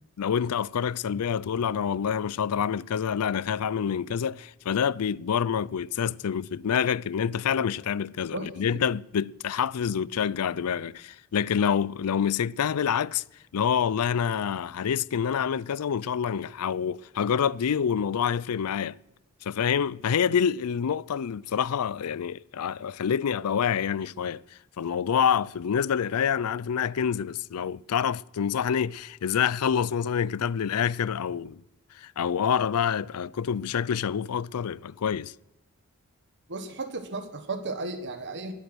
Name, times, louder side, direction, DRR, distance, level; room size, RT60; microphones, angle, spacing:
voice 1, 0.2-13.2 13.5-19.0 19.4-24.4 24.8-31.6 32.0-35.3, left 7 dB, 75° left, 0.4 m, -27 dB
voice 2, 36.5-38.5, right 3 dB, 55° right, 1.4 m, -34 dB
20.0 x 8.2 x 6.2 m
head